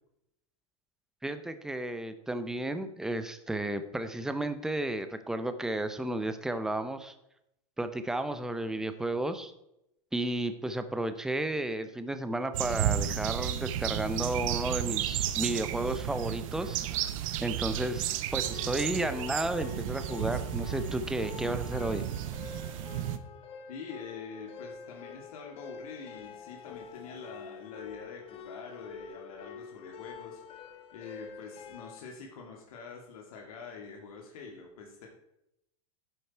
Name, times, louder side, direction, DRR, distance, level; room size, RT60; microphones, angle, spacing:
voice 1, 1.2-7.1 7.8-9.5 10.1-17.1 17.4-22.0, right 1 dB, 5° right, 10 dB, 0.7 m, -33 dB
sound 1, 12.5-23.2, right 11 dB, 65° right, 0.9 m, -33 dB
sound 2, 18.4-32.0, left 6 dB, 30° left, 1.2 m, -47 dB
voice 2, 23.7-30.4 30.9-35.1, left 5 dB, 75° left, 1 dB, 2.7 m, -45 dB
10.5 x 7.9 x 4.5 m, 0.81 s
supercardioid pair, 145°, 19 cm